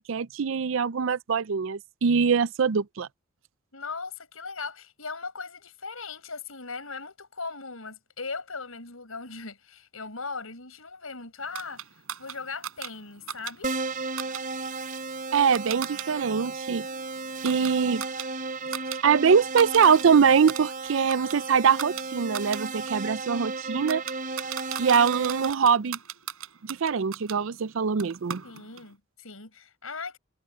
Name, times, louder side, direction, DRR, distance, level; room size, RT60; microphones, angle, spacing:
voice 1, 0.0-3.1 15.3-16.9 17.4-18.0 19.0-24.0 24.8-26.0 26.6-28.4, right 6 dB, 65° right, 0.5 m, -23 dB
voice 2, 3.7-11.8 12.2-13.7 28.4-30.2, left 4 dB, 85° left, 5.1 m, -38 dB
sound 1, 11.5-16.1 16.4-19.0 19.3-20.0 20.3-27.4 28.0-28.9, right 9 dB, 85° right, 7.6 m, -39 dB
Keyboard (musical), 13.6-25.5, right 3 dB, 40° right, 4.1 m, -34 dB
head